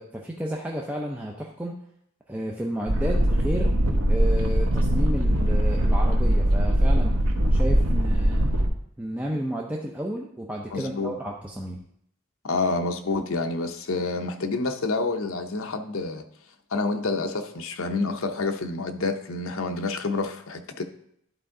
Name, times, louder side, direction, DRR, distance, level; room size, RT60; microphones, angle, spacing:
voice 1, 0.0-1.8 2.3-3.7 4.1-7.2 7.5-8.5 9.0-11.8, equal, 5° right, 0.5 m, -32 dB
sound 1, 2.9-8.7, equal, 75° right, 1.0 m, -21 dB
voice 2, 10.7-11.1 12.4-16.2 16.7-20.8, left 3 dB, 65° left, 0.7 m, -28 dB
11.0 x 4.4 x 3.8 m
head